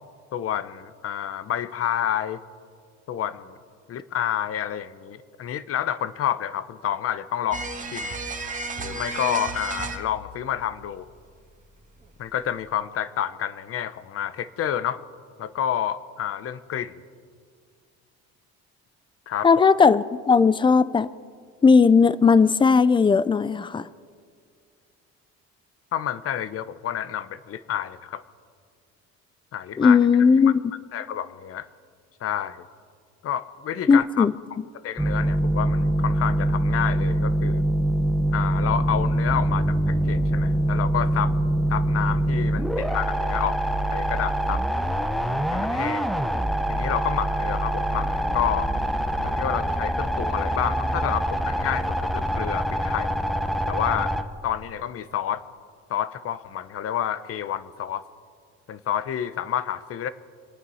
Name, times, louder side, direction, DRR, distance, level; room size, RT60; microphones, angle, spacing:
voice 1, 0.3-2.4 3.1-3.6 3.9-8.2 8.8-11.1 12.2-15.0 15.4-17.0 19.3-19.5 25.9-28.2 29.5-30.0 30.9-31.6 32.2-32.6 33.2-34.3 34.8-37.6 38.3-41.3 41.7-43.6 43.9-44.6 45.5-46.1 46.7-48.7 49.2-53.1 53.7-54.1 54.4-55.4 55.9-58.0 58.7-60.1, left 10 dB, 50° left, 15 dB, 0.9 m, -29 dB
sound 1, 7.5-10.9 11.2-11.3 12.0-12.1, right 3 dB, 25° right, 1.7 m, -33 dB
voice 2, 19.4-21.1 21.6-23.8 29.8-30.6 33.9-34.3, left 5 dB, 15° left, 17 dB, 0.4 m, -17 dB
sound 2, 35.0-54.2, right 1 dB, ahead, 0.9 m, -24 dB
26.0 x 9.3 x 5.6 m, 2.1 s
cardioid pair, 110°, 30 cm